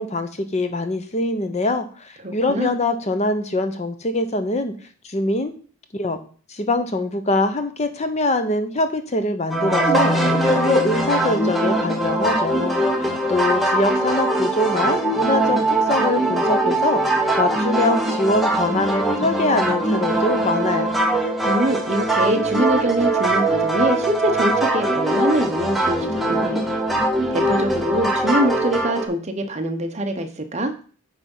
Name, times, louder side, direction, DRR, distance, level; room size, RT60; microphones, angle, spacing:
voice 1, 0.0-4.7 5.0-5.5 5.9-6.2 6.5-20.9, left 2 dB, 35° left, 9 dB, 0.7 m, -23 dB
voice 2, 2.2-2.7 21.4-26.6 27.3-30.7, equal, 35° right, 6 dB, 0.9 m, -24 dB
sound 1, 9.5-29.1, right 1 dB, ahead, 1.1 m, -21 dB
9.4 x 3.5 x 5.4 m, 0.41 s
head